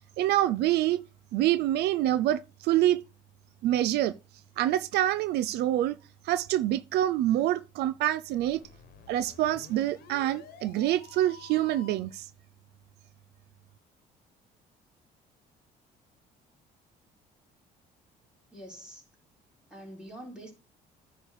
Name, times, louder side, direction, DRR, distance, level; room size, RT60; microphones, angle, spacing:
voice 1, 0.2-1.0 1.3-3.0 3.6-4.1 4.6-6.0 6.2-8.6 9.1-12.3, right 13 dB, 75° right, 0.4 m, -26 dB
Digital Alarm, 8.2-12.2, left 8 dB, 65° left, 1.2 m, -51 dB
voice 2, 18.5-19.1 19.7-20.5, right 1 dB, 5° right, 3.6 m, -45 dB
9.8 x 3.3 x 6.3 m
cardioid pair, 110°, 17 cm